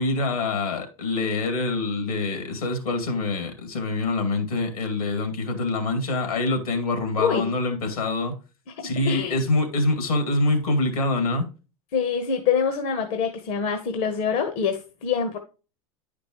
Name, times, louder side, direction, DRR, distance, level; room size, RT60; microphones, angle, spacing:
voice 1, 0.0-8.3 8.8-11.5, left 2 dB, 80° left, 2.5 m, -25 dB
voice 2, 7.2-7.5 9.0-9.4 11.9-15.4, left 6 dB, 55° left, 1.2 m, -25 dB
10.0 x 5.2 x 3.0 m
hypercardioid pair, 95°, 18 cm